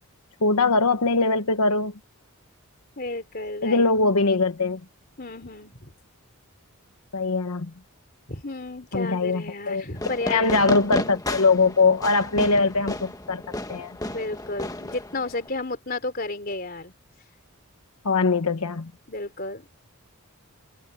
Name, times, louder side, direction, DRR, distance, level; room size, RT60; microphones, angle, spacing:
voice 1, 0.4-1.9 3.6-4.8 7.1-7.7 8.9-9.8 10.3-13.4 13.7-14.0 18.0-18.9, left 3 dB, 85° left, 1.1 m, -22 dB
voice 2, 3.0-3.9 5.2-5.9 8.3-10.6 14.1-16.9 19.1-19.7, left 2 dB, 40° left, 3.4 m, -32 dB
Fireworks, 9.9-15.5, left 1 dB, 15° left, 1.4 m, -33 dB
head